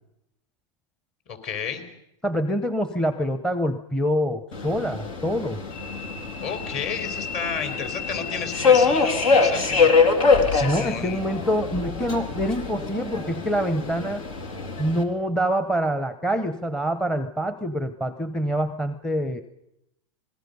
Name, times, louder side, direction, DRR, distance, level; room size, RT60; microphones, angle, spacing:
voice 1, 1.3-1.8 6.4-9.9 10.5-11.2, left 6 dB, 45° left, 7 dB, 4.1 m, -32 dB
voice 2, 2.2-5.6 10.6-14.2 14.8-19.4, equal, 5° left, 10 dB, 0.8 m, -25 dB
Subway metro underground, 4.5-15.0, left 4 dB, 85° left, 3.4 m, -24 dB
26.5 x 20.0 x 5.4 m, 0.84 s
supercardioid pair, 130°, 17 cm